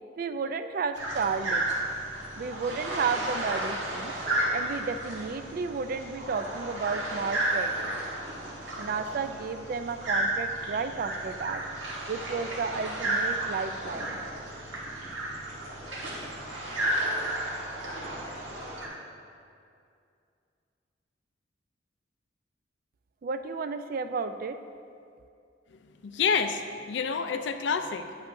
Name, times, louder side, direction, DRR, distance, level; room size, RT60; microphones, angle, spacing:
voice 1, 0.2-1.7 2.4-4.1 4.5-8.0 8.8-11.6 12.1-14.2 23.2-24.6, right 5 dB, 50° right, 9 dB, 0.3 m, -32 dB
sound 1, 0.9-18.9, right 1 dB, 75° right, 1.4 m, -33 dB
voice 2, 25.7-28.2, left 6 dB, 65° left, 8 dB, 0.4 m, -29 dB
8.9 x 8.1 x 2.6 m, 2.4 s
head